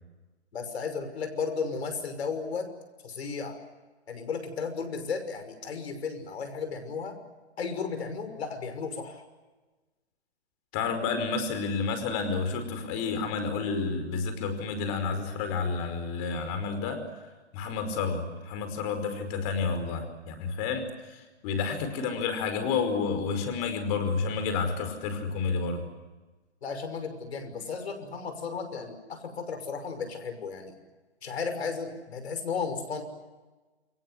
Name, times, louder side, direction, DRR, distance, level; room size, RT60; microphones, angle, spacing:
voice 1, 0.5-2.7 3.0-3.6 4.1-7.2 7.6-9.2 26.6-30.8 31.2-33.0, left 5 dB, 70° left, 8 dB, 6.0 m, -34 dB
voice 2, 10.7-17.0 17.5-25.8, left 5 dB, 30° left, 9 dB, 5.0 m, -30 dB
29.0 x 23.0 x 7.8 m, 1.2 s
hypercardioid pair, 145°, 34 cm